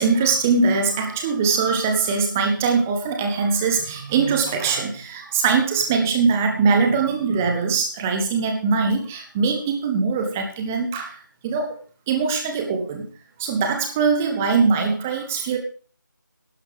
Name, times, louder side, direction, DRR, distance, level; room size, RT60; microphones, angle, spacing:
voice 1, 0.0-11.7 12.1-13.1 13.4-15.6, right 4 dB, 5° right, 4 dB, 0.7 m, -22 dB
11.5 x 10.5 x 4.8 m, 0.42 s
figure-of-eight pair, 170°, 11 cm